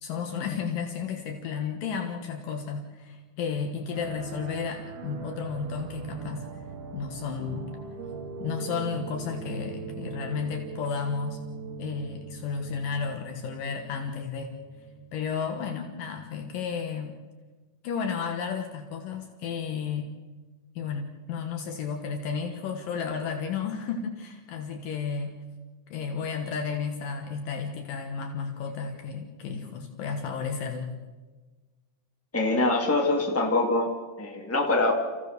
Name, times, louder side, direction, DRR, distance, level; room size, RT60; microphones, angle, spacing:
voice 1, 0.0-6.4 6.9-7.7 8.4-11.4 11.8-14.5 15.1-17.1 17.8-20.1 20.8-25.3 25.9-30.9, left 6 dB, 70° left, 4 dB, 2.9 m, -32 dB
sound 1, 3.9-16.0, right 5 dB, 85° right, 4.1 m, -41 dB
voice 2, 32.3-33.9 34.2-34.9, left 2 dB, 5° left, 0 dB, 1.9 m, -24 dB
29.0 x 15.5 x 6.8 m, 1.3 s
omnidirectional pair, 4.2 m